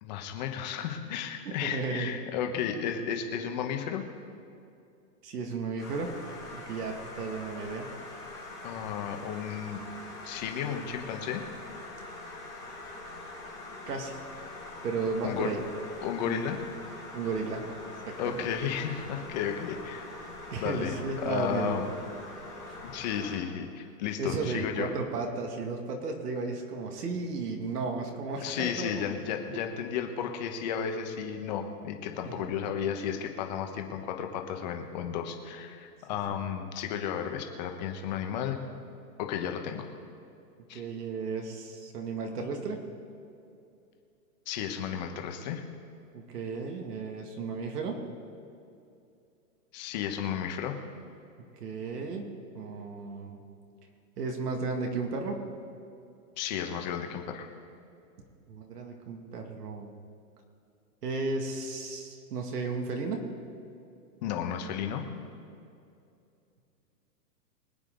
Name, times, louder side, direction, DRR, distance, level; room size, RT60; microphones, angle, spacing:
voice 1, 0.0-4.0 8.6-9.8 10.2-11.4 15.2-15.5 16.0-16.6 18.2-20.1 20.6-20.9 21.2-21.9 22.8-24.9 28.4-38.6 39.2-39.9 40.7-40.8 44.5-45.6 49.7-50.8 56.4-57.5 64.2-65.0, left 8 dB, 30° left, 4 dB, 1.2 m, -33 dB
voice 2, 1.5-2.8 5.2-6.1 6.5-7.9 13.9-14.2 14.8-15.6 16.2-16.4 17.1-17.7 18.1-18.5 20.5-21.9 22.7-22.8 24.2-29.1 32.2-32.5 36.3-36.4 40.7-42.8 46.1-48.0 51.5-53.4 54.2-55.4 58.5-59.9 61.0-63.3, right 4 dB, 75° right, 2 dB, 2.4 m, -34 dB
sound 1, 5.8-23.4, left 2 dB, 5° right, 0.4 m, -44 dB
24.0 x 8.9 x 4.0 m, 2.6 s
hypercardioid pair, 165°, 48 cm